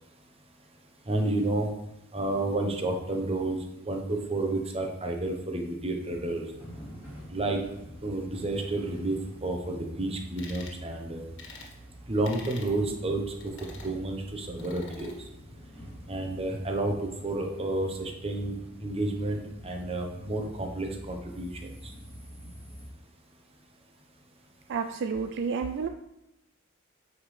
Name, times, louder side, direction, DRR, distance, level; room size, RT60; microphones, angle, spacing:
voice 1, 1.1-1.7 2.1-3.6 3.9-6.4 7.3-7.6 8.0-9.2 9.4-11.2 12.1-13.2 13.8-15.1 16.1-18.5 18.8-21.5, right 2 dB, 30° right, 3 dB, 0.9 m, -30 dB
sound 1, 6.0-22.9, equal, 10° right, 2.7 m, -46 dB
sound 2, 10.4-10.8 11.4-11.7 12.2-12.7 13.4-13.9 14.6-15.2, left 3 dB, 60° left, 1.5 m, -46 dB
voice 2, 24.7-25.9, right 5 dB, 55° right, 7 dB, 0.4 m, -30 dB
9.3 x 5.0 x 3.3 m, 0.87 s
head